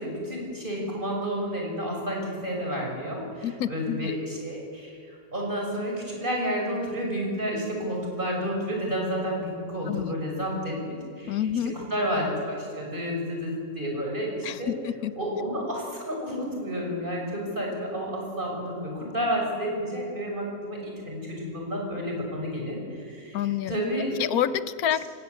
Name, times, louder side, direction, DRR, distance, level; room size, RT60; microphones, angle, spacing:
voice 1, 0.0-14.7 15.2-24.2, equal, 35° right, -1 dB, 6.5 m, -31 dB
voice 2, 3.4-4.1 9.9-10.1 11.3-11.7 14.4-15.1 23.3-23.8 24.2-25.1, left 10 dB, 85° left, 14 dB, 1.3 m, -28 dB
23.5 x 19.0 x 8.2 m, 2.3 s
omnidirectional pair, 1.5 m